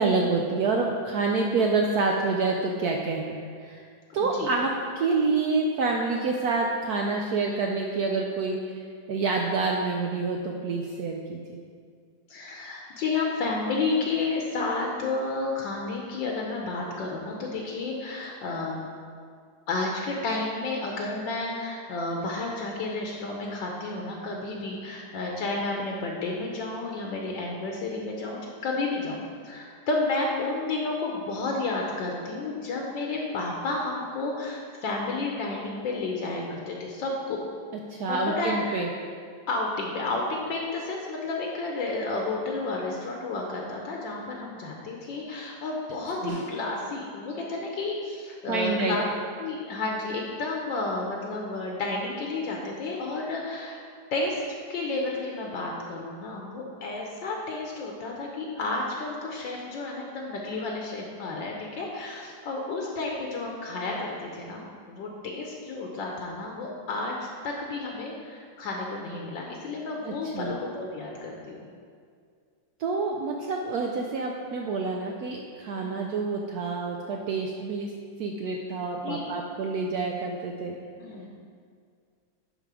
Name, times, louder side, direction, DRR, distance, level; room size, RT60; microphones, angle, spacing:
voice 1, 0.0-3.4 3.6-3.9 4.1-4.7 5.0-11.6 37.9-38.9 46.2-46.4 48.5-49.0 70.0-70.6 72.8-77.9 78.2-80.8, right 3 dB, 80° right, 1 dB, 0.8 m, -27 dB
voice 2, 4.1-4.5 12.3-18.9 19.7-37.4 38.1-38.9 39.5-49.0 49.4-53.8 54.1-54.4 54.7-71.6 75.8-76.0 79.0-79.3 81.0-81.3, left 3 dB, 70° left, -1 dB, 1.4 m, -31 dB
Snare drum, 46.3-47.2 51.6-51.7, left 1 dB, 60° right, 2.0 m, -43 dB
10.5 x 3.7 x 4.8 m, 2.1 s
omnidirectional pair, 2.2 m